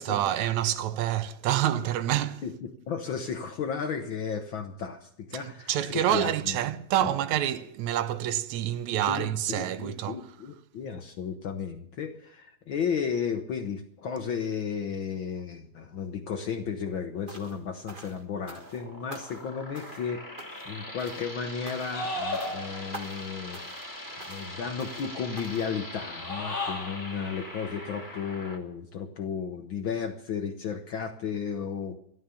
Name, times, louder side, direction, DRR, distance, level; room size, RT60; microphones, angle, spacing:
voice 1, 0.0-2.4 5.4-10.3, right 12 dB, 75° right, 2.0 m, -27 dB
voice 2, 2.4-6.6 7.0-7.1 9.1-20.2 20.7-23.6 24.3-32.0, left 6 dB, 85° left, 1.0 m, -34 dB
sound 1, 17.3-17.6 17.9-18.8 19.1-19.5 19.7-20.1 20.4-20.7 21.0-21.3 21.6-22.0 22.3-22.6 22.9-23.3 23.5-23.9 24.2-24.5 24.8-25.1 25.4-25.7, right 2 dB, 50° right, 0.5 m, -46 dB
sound 2, 18.5-28.6, left 1 dB, 10° left, 1.6 m, -42 dB
sound 3, 21.9-23.0 26.1-27.1, left 1 dB, 25° left, 1.4 m, -33 dB
13.0 x 13.0 x 7.0 m
omnidirectional pair, 3.6 m